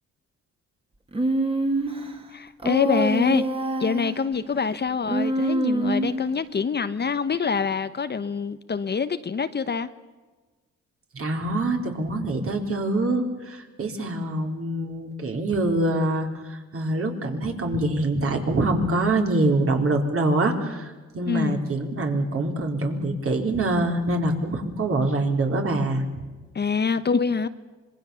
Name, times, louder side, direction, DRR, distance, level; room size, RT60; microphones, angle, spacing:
Human voice, 1.1-2.1 2.6-4.2 5.1-6.3, right 1 dB, 20° right, 2.6 m, -25 dB
voice 1, 2.3-3.5 3.8-9.9 21.3-21.6 26.5-27.5, left 5 dB, 35° left, 1.0 m, -25 dB
voice 2, 11.1-26.0, right 2 dB, 45° right, 4.1 m, -25 dB
26.0 x 21.5 x 7.1 m
cardioid pair, 90°, 30 cm